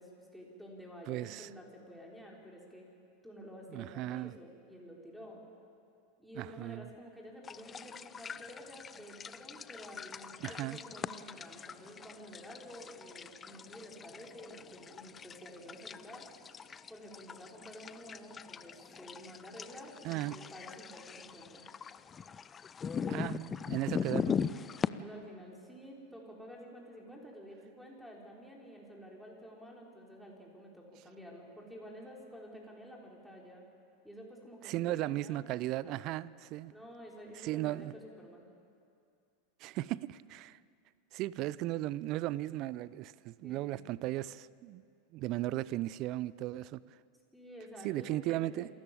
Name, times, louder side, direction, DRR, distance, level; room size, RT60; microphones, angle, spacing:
voice 1, 0.0-2.9 3.2-5.4 6.2-16.3 16.9-21.6 24.8-33.6 34.0-35.5 35.8-36.0 36.7-38.4 43.4-43.9 47.3-48.6, equal, ahead, 5.1 m, -50 dB
voice 2, 1.1-1.5 3.7-4.3 6.4-6.9 10.4-10.8 20.0-20.4 23.1-24.4 34.6-36.7 37.4-37.9 39.6-40.6 41.1-44.8 45.1-46.8 47.8-48.7, right 16 dB, 50° right, 0.5 m, -36 dB
sound 1, 7.4-24.9, left 6 dB, 25° left, 0.6 m, -41 dB
27.5 x 14.0 x 8.8 m
hypercardioid pair, 90°, 0 cm